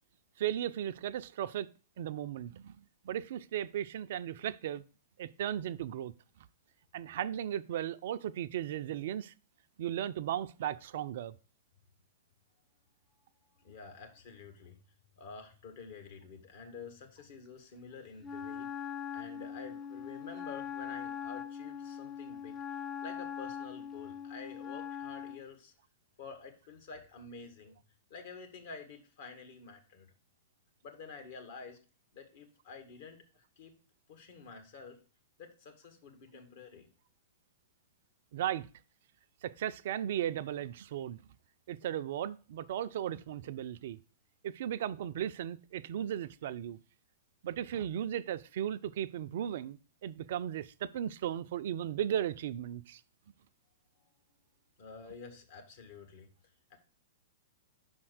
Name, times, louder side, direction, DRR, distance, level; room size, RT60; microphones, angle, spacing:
voice 1, 0.4-1.7 2.0-2.8 3.0-4.8 5.2-6.1 6.9-9.3 9.8-11.3 38.3-38.7 39.4-41.2 41.7-44.0 44.4-46.8 47.4-53.0, right 10 dB, 60° right, 0.4 m, -36 dB
voice 2, 13.6-14.8 15.2-18.7 19.1-25.7 26.2-27.8 28.1-30.1 30.8-31.8 32.1-33.7 34.1-35.0 35.4-36.9 54.8-56.3 56.7-56.8, left 5 dB, 60° left, 1.7 m, -49 dB
Wind instrument woodwind instrument, 18.2-25.5, left 8 dB, 15° left, 0.5 m, -41 dB
5.7 x 4.4 x 6.3 m
hypercardioid pair, 110°, 0 cm